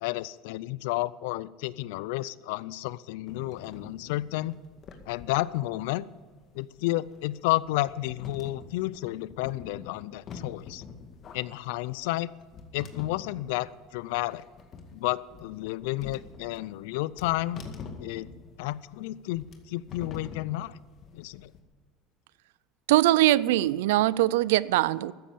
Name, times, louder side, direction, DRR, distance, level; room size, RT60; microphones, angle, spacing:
voice 1, 0.0-4.6 5.1-6.1 6.5-10.8 11.3-12.3 12.7-14.4 14.9-17.6 18.0-18.3 18.6-20.8 21.1-21.5, left 17 dB, 80° left, 0.5 m, -31 dB
sound 1, 3.3-21.6, left 4 dB, 45° left, 2.0 m, -46 dB
voice 2, 22.9-25.1, right 16 dB, 85° right, 0.4 m, -22 dB
14.0 x 10.0 x 8.5 m
supercardioid pair, 100°, 0 cm